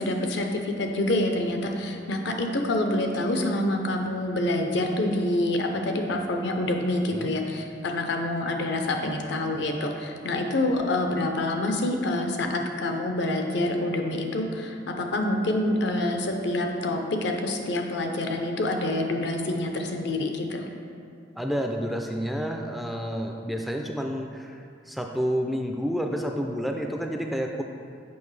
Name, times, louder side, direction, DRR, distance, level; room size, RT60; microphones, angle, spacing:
voice 1, 0.0-20.6, left 1 dB, 70° left, 3 dB, 0.6 m, -27 dB
voice 2, 21.4-27.6, equal, ahead, 2 dB, 0.3 m, -29 dB
6.9 x 5.4 x 3.2 m, 2.4 s
head